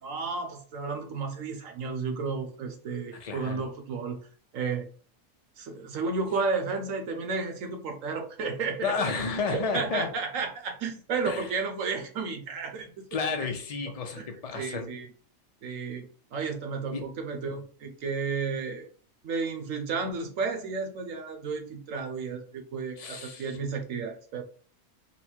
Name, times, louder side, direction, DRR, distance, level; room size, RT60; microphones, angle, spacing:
voice 1, 0.0-4.2 4.5-4.9 5.6-8.9 9.5-13.0 14.1-14.3 14.5-15.1 15.6-18.8 19.2-24.4, right 4 dB, 70° right, 1.1 m, -32 dB
voice 2, 3.1-3.7 8.8-10.1 11.2-11.5 13.1-14.9 16.9-17.1 23.0-23.6, left 4 dB, 45° left, 0.5 m, -32 dB
4.1 x 2.2 x 4.4 m
omnidirectional pair, 1.5 m